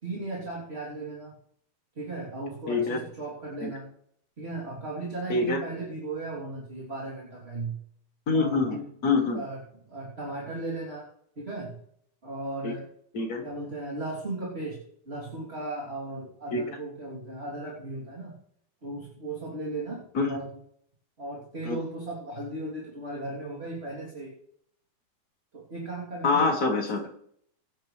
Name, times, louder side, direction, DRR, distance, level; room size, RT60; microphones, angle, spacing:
voice 1, 0.0-1.3 2.0-3.9 4.4-7.8 8.3-8.8 9.3-9.6 9.9-11.1 11.4-11.8 12.2-12.8 13.4-18.3 18.8-20.5 21.2-24.3 25.5-26.5, right 2 dB, 15° right, -5 dB, 2.9 m, -36 dB
voice 2, 2.7-3.0 3.6-3.7 5.3-5.6 8.3-8.8 9.0-9.4 12.6-12.7 13.1-13.4 16.5-16.6 20.1-20.4 21.6-21.8 26.2-27.1, left 3 dB, 80° left, 1 dB, 0.8 m, -25 dB
24.5 x 9.2 x 3.3 m, 0.68 s
omnidirectional pair, 4.3 m